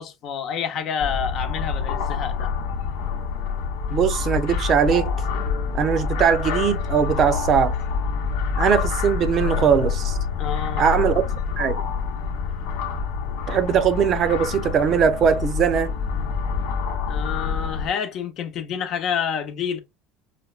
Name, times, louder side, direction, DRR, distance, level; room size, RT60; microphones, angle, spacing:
voice 1, 0.0-2.5 10.4-10.9 17.1-19.8, left 7 dB, 55° left, 0.8 m, -28 dB
sound 1, 1.0-17.9, left 6 dB, 80° left, 0.9 m, -26 dB
voice 2, 3.9-5.1 5.7-7.8 8.6-10.2 10.8-11.3 11.6-11.8 13.5-15.9, right 7 dB, 45° right, 0.7 m, -20 dB
4.9 x 2.1 x 2.4 m
supercardioid pair, 100°, 0 cm